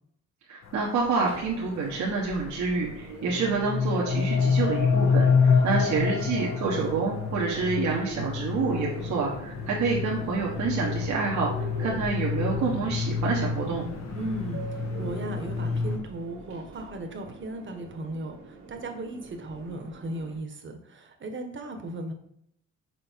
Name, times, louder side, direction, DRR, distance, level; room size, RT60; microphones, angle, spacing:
voice 1, 0.5-13.8, right 4 dB, 65° right, -3 dB, 1.4 m, -28 dB
sound 1, 0.6-16.0, left 5 dB, 60° left, 1.1 m, -34 dB
Subway metro underground, 1.0-20.4, right 4 dB, 85° right, 2.0 m, -44 dB
sound 2, 3.3-7.3, left 5 dB, 85° left, 1.1 m, -23 dB
voice 2, 5.5-6.1 14.1-22.1, right 1 dB, 40° right, 5 dB, 1.3 m, -37 dB
6.3 x 4.5 x 4.6 m, 0.71 s
cardioid pair, 90°, 30 cm